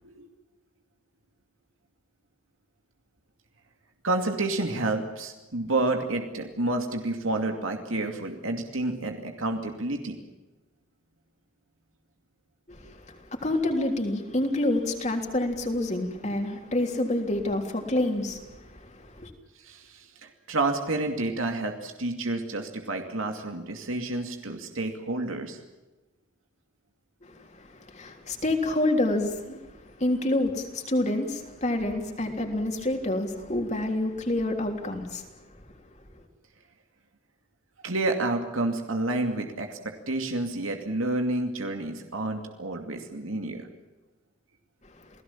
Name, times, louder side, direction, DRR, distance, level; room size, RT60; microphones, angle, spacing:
voice 1, 4.0-10.2 19.6-25.6 37.8-43.7, right 2 dB, 90° right, 2.5 m, -29 dB
voice 2, 12.7-19.3 27.2-35.3 44.8-45.1, left 1 dB, 35° left, 3.4 m, -28 dB
29.0 x 18.0 x 7.4 m
head